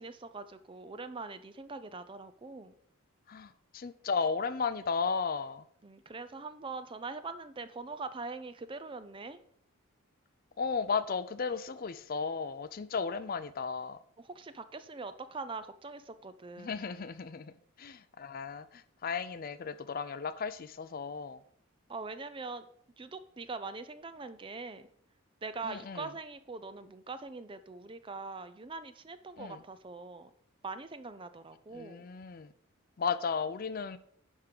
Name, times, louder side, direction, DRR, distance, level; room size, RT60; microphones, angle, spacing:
voice 1, 0.0-2.7 5.8-9.4 14.2-16.7 21.9-22.7 23.0-24.9 25.4-30.3 30.6-32.1, right 3 dB, 25° right, 12 dB, 0.4 m, -42 dB
voice 2, 3.3-5.6 10.6-14.0 16.6-17.5 17.8-21.4 25.6-26.1 29.4-29.6 31.7-32.5 33.0-34.0, left 5 dB, 40° left, 13 dB, 0.4 m, -35 dB
10.5 x 3.7 x 6.5 m, 0.67 s
head